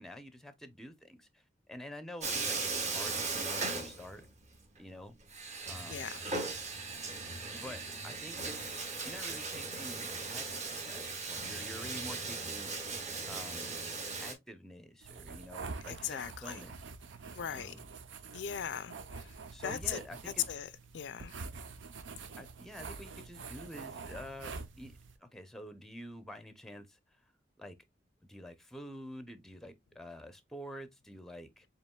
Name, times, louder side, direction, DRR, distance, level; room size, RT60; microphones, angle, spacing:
voice 1, 0.0-4.3 4.8-5.2 5.7-6.1 7.5-13.8 14.2-16.7 17.5-17.9 19.5-20.4 22.4-27.2 27.6-27.7 28.2-31.7, equal, ahead, 0.6 m, -48 dB
Bathtub (filling or washing), 2.2-4.5 4.8-4.9 5.3-14.3, right 3 dB, 40° right, 1.3 m, -38 dB
voice 2, 5.9-6.2 7.6-7.7 15.9-16.6 17.4-17.7 18.3-20.7 20.9-21.3, left 9 dB, 65° left, 0.4 m, -39 dB
sound 1, 15.0-25.2, right 4 dB, 85° right, 0.6 m, -46 dB
7.3 x 3.0 x 2.2 m
head